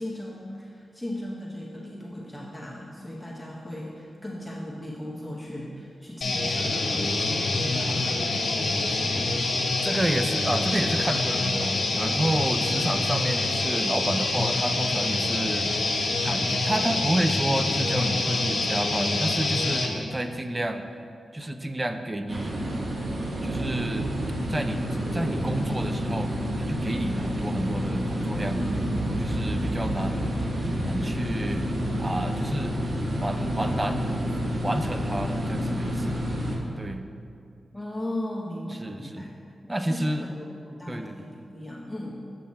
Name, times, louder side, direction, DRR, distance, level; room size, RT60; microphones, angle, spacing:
voice 1, 0.0-9.3 37.7-39.3 39.6-42.2, left 1 dB, 5° left, -4 dB, 0.9 m, -37 dB
sound 1, 6.2-19.9, left 2 dB, 70° left, 1.0 m, -26 dB
voice 2, 9.8-15.7 16.2-20.9 21.3-22.7 23.0-23.1 23.4-24.1 24.5-24.8 25.1-26.3 26.6-28.6 29.0-30.4 30.8-31.6 32.0-32.8 33.2-34.3 34.6-36.2 36.8-37.0 38.7-39.3 39.7-40.3 40.9-41.3, right 1 dB, 25° right, 8 dB, 0.5 m, -30 dB
sound 2, 22.3-36.6, equal, 60° right, 1.0 m, -29 dB
7.5 x 5.7 x 4.2 m, 2.5 s
cardioid pair, 60°, 0 cm